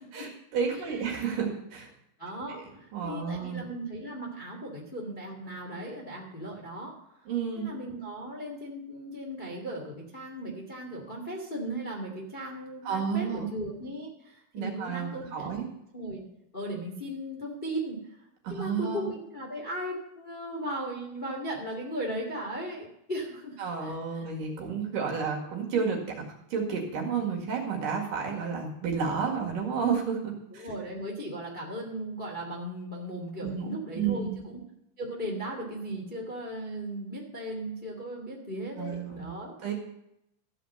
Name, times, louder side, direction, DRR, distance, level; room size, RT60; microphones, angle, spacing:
voice 1, 0.1-1.9 2.5-2.6 2.9-3.6 7.3-7.7 12.8-13.5 14.5-15.7 18.4-19.1 23.6-26.0 26.5-30.6 33.4-34.4 38.8-39.3 39.6-39.7, right 6 dB, 55° right, 0 dB, 3.1 m, -31 dB
voice 2, 2.2-6.9 7.5-15.7 15.9-16.2 16.5-18.2 18.5-24.3 30.5-34.6 35.0-39.5, right 1 dB, 40° left, -1 dB, 0.7 m, -37 dB
14.5 x 5.0 x 7.8 m, 0.79 s
omnidirectional pair, 5.1 m